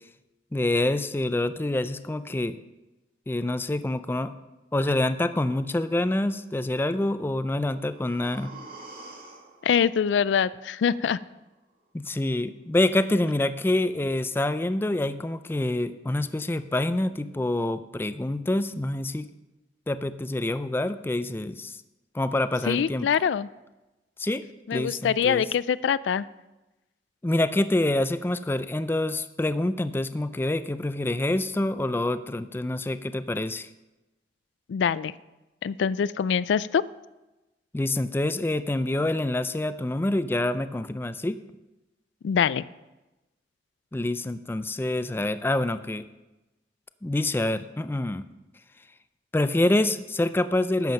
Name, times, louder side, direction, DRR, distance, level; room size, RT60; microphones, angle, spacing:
voice 1, 0.5-2.6 3.3-4.3 4.7-8.5 11.9-19.3 19.9-21.8 22.1-23.1 24.2-24.4 24.7-25.5 27.2-33.7 37.7-41.4 43.9-46.0 47.0-48.2 49.3-50.9, left 1 dB, 15° left, 12 dB, 0.4 m, -26 dB
sound 1, 7.5-11.4 11.7-11.8, right 3 dB, 55° right, 1.7 m, -48 dB
voice 2, 9.6-11.2 22.7-23.5 24.7-26.3 34.7-35.1 35.6-36.8 42.2-42.6, left 7 dB, 90° left, 18 dB, 0.3 m, -24 dB
11.5 x 7.4 x 5.2 m, 1.0 s
head